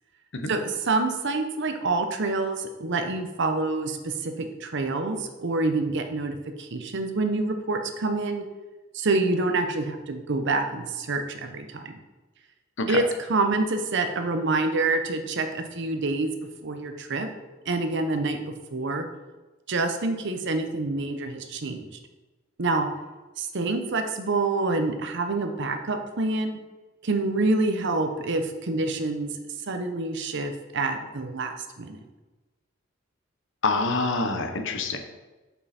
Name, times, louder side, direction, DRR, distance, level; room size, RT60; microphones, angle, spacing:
voice 1, 0.5-8.4 8.9-12.0 12.9-16.3 16.6-17.3 17.7-19.1 19.7-21.9 22.6-22.9 23.4-26.6 27.0-29.3 29.7-32.0, right 3 dB, 60° right, 6 dB, 0.8 m, -27 dB
voice 2, 33.6-35.0, left 3 dB, 65° left, 6 dB, 0.9 m, -26 dB
7.0 x 5.5 x 4.2 m, 1.2 s
head